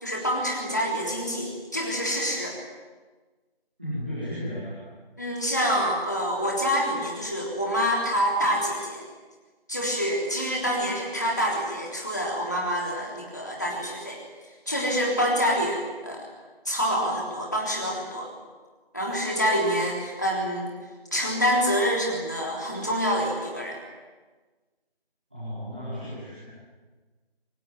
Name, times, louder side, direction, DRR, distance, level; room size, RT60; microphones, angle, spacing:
voice 1, 0.0-2.6 5.2-9.0 9.7-14.2 14.7-16.3 16.7-18.3 18.9-20.7 21.1-23.8, equal, 20° left, -2 dB, 3.6 m, -26 dB
voice 2, 3.8-4.8 25.3-26.5, equal, 10° right, -12 dB, 4.1 m, -34 dB
24.5 x 21.5 x 9.4 m, 1.3 s
figure-of-eight pair, 175°, 30 cm